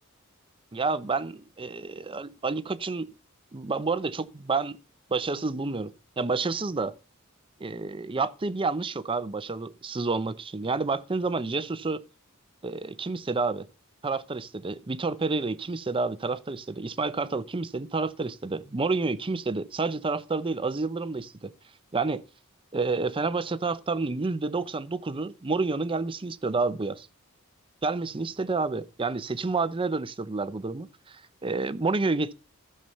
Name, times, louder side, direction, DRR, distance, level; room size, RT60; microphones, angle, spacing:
voice 1, 0.7-3.1 3.5-4.8 5.1-7.0 7.6-12.0 12.6-13.7 14.0-21.5 21.9-22.2 22.7-27.1 27.8-32.3, right 3 dB, 25° right, 0.5 m, -29 dB
12.5 x 6.7 x 5.6 m
head